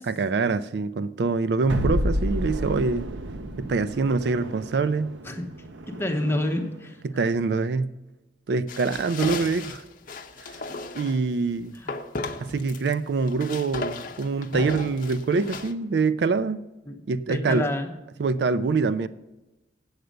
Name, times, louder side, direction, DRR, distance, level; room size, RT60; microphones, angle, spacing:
voice 1, 0.1-3.1 3.6-5.1 7.0-7.9 8.5-9.8 10.4-10.6 10.9-11.7 12.4-16.6 17.1-17.7 18.2-19.1, right 4 dB, 60° right, 14 dB, 0.4 m, -25 dB
sound 1, 1.7-6.8, equal, 85° right, 0.7 m, -31 dB
voice 2, 5.9-7.0 11.7-11.9 16.9-17.0 17.3-17.9, left 1 dB, 10° left, 2 dB, 1.0 m, -28 dB
sound 2, 8.7-11.2 11.9-12.9 13.2-15.7, left 3 dB, 50° left, 0.7 m, -35 dB
8.1 x 7.8 x 6.4 m, 1.0 s
head